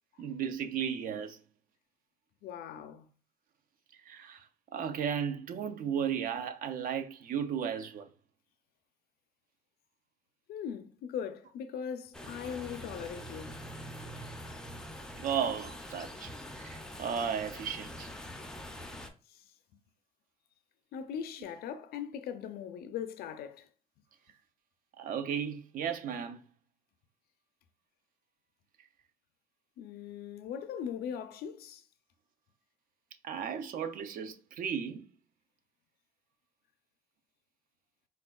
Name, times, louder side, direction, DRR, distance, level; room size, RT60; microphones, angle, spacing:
voice 1, 0.2-1.4 4.1-8.1 15.2-18.1 25.0-26.4 33.2-35.1, right 7 dB, 55° right, 0.4 m, -35 dB
voice 2, 2.4-3.1 10.5-13.6 19.3-19.5 20.9-23.7 29.8-31.8, left 8 dB, 65° left, 0.4 m, -40 dB
sound 1, 12.1-19.1, equal, 5° left, 0.4 m, -44 dB
4.3 x 2.3 x 2.2 m
cardioid pair, 110°, 17 cm